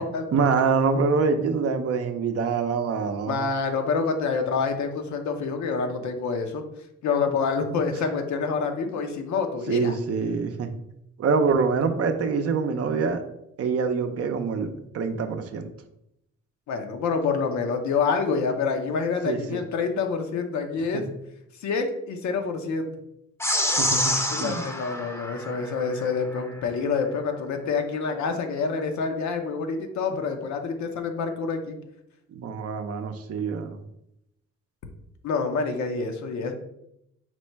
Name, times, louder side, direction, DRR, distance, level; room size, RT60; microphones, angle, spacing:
voice 1, 0.3-3.4 9.7-10.7 11.2-13.2 13.6-15.7 19.2-19.6 20.9-21.0 23.8-24.6 32.3-33.8, right 5 dB, 50° right, 7 dB, 0.6 m, -25 dB
voice 2, 3.3-6.6 7.0-9.9 16.7-21.0 21.6-22.9 24.3-31.7 35.2-36.5, left 5 dB, 70° left, 5 dB, 0.7 m, -27 dB
sound 1, 23.4-26.1, left 1 dB, 10° left, 0.6 m, -27 dB
4.3 x 2.1 x 4.4 m, 0.80 s
cardioid pair, 90°, 30 cm